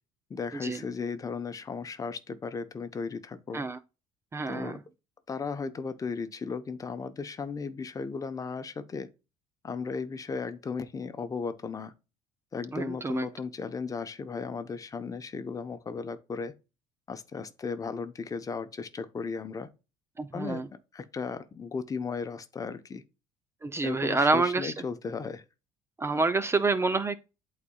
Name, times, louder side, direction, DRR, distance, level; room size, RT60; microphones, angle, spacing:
voice 1, 0.3-3.7 4.5-4.8 5.3-9.1 9.6-11.9 12.5-16.5 17.1-19.7 20.3-20.6 20.9-23.0 23.8-25.4, left 5 dB, 25° left, 0.9 m, -35 dB
voice 2, 4.3-4.8 12.7-13.3 20.2-20.7 23.6-24.7 26.0-27.2, right 3 dB, 20° right, 0.5 m, -27 dB
11.5 x 4.1 x 2.3 m
cardioid pair, 110°, 13 cm